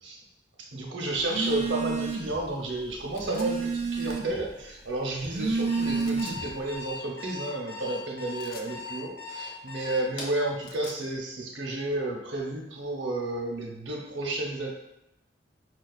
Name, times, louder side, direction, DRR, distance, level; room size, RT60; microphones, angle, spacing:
voice 1, 0.6-14.7, right 2 dB, 85° right, 0 dB, 0.7 m, -32 dB
Telephone, 1.2-2.4 2.8-4.5 5.1-6.6, right 4 dB, 40° right, 0.4 m, -30 dB
sound 1, 3.1-3.5 5.9-6.4 8.3-8.7 10.4-11.0, left 5 dB, 55° left, 0.4 m, -47 dB
Alarm, 5.7-10.4, left 3 dB, 75° left, 0.9 m, -39 dB
4.8 x 2.3 x 2.3 m, 0.85 s
head